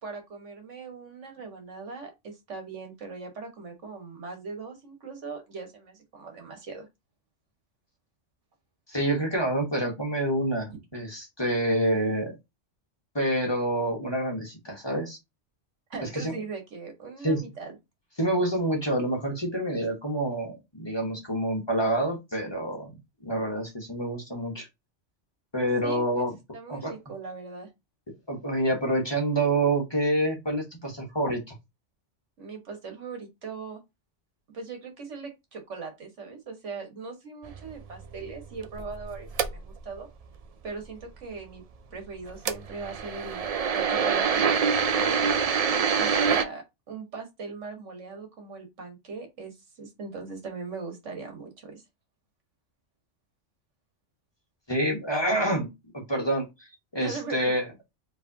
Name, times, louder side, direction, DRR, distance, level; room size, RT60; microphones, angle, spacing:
voice 1, 0.0-6.9 15.9-17.7 25.8-26.2 26.5-27.7 32.4-33.8 34.5-40.1 40.6-41.6 41.9-43.5 43.7-44.5 45.0-51.8 57.0-57.5, right 4 dB, 80° right, 1.7 m, -39 dB
voice 2, 8.9-12.4 13.1-15.2 16.0-16.3 17.2-17.4 18.2-22.9 23.2-24.7 25.5-26.3 26.7-26.9 28.3-31.5 54.7-56.5 56.9-57.6, right 1 dB, 20° left, 1.3 m, -27 dB
sound 1, 37.5-39.9 42.3-46.4, right 6 dB, 60° right, 0.4 m, -25 dB
4.9 x 3.4 x 2.7 m
omnidirectional pair, 1.2 m